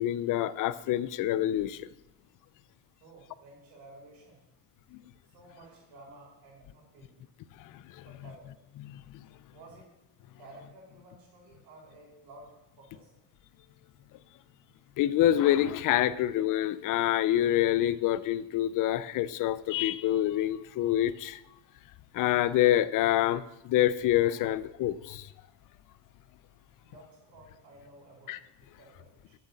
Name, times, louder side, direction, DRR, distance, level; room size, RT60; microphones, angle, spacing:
voice 1, 0.0-1.9 4.9-5.0 7.7-8.0 8.9-9.0 15.0-21.4 22.1-25.3 28.3-28.4, left 13 dB, 45° left, 17 dB, 0.5 m, -26 dB
voice 2, 3.0-4.4 5.3-7.2 8.1-8.5 9.5-9.9 10.4-13.2 16.1-16.3 24.4-24.5 26.8-29.4, right 2 dB, 60° right, -1 dB, 4.0 m, -53 dB
8.0 x 6.6 x 7.1 m, 0.90 s
cardioid pair, 130°, 45 cm